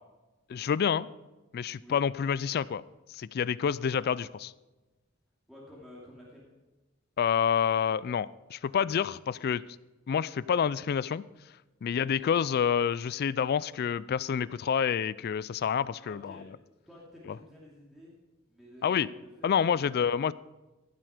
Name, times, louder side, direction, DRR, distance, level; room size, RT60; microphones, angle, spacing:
voice 1, 0.5-1.1 1.5-2.8 3.1-4.5 7.2-9.6 10.1-11.2 11.8-16.4 18.8-19.1 19.4-20.3, left 7 dB, 50° left, 19 dB, 0.3 m, -28 dB
voice 2, 5.5-6.5 12.0-12.2 16.0-16.5 16.9-18.1 18.5-20.0, equal, ahead, -6 dB, 2.5 m, -51 dB
14.5 x 7.6 x 5.0 m, 1.1 s
head